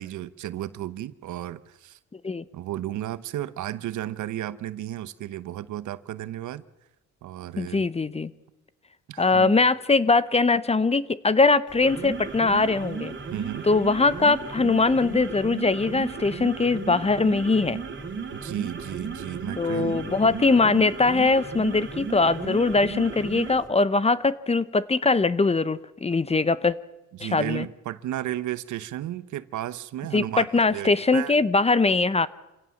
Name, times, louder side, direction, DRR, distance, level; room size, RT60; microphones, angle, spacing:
voice 1, 0.0-2.0 2.5-6.6 7.2-7.9 9.1-9.6 13.3-13.7 18.3-20.4 27.1-31.3, right 13 dB, 75° right, 1.0 m, -34 dB
voice 2, 7.6-8.3 9.2-13.1 13.6-17.8 19.6-26.8 27.2-27.7 30.1-32.3, left 3 dB, 20° left, 0.8 m, -22 dB
sound 1, 11.7-23.7, right 5 dB, 40° right, 2.9 m, -35 dB
26.5 x 17.0 x 7.2 m
cardioid pair, 90°, 30 cm